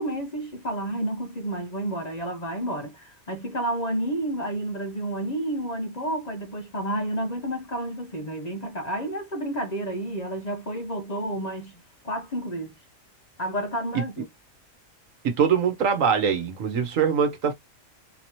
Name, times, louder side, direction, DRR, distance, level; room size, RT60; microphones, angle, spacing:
voice 1, 0.0-11.7 12.0-12.7 13.4-14.3, right 1 dB, 40° left, 0.8 m, -30 dB
voice 2, 15.2-17.5, right 7 dB, 75° right, 1.3 m, -23 dB
4.0 x 2.8 x 2.9 m
omnidirectional pair, 1.4 m